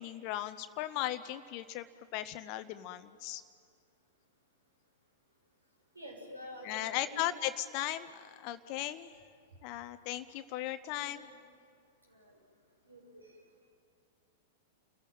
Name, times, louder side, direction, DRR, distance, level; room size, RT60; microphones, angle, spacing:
voice 1, 0.0-1.8 2.1-3.4 6.6-9.2 9.6-11.3, left 14 dB, 45° left, 11 dB, 0.7 m, -37 dB
voice 2, 5.9-7.2 10.9-11.1 12.1-12.4 12.8-13.4, equal, 85° right, 0 dB, 6.1 m, -48 dB
29.5 x 15.5 x 9.2 m, 2.2 s
figure-of-eight pair, 95°, 0 cm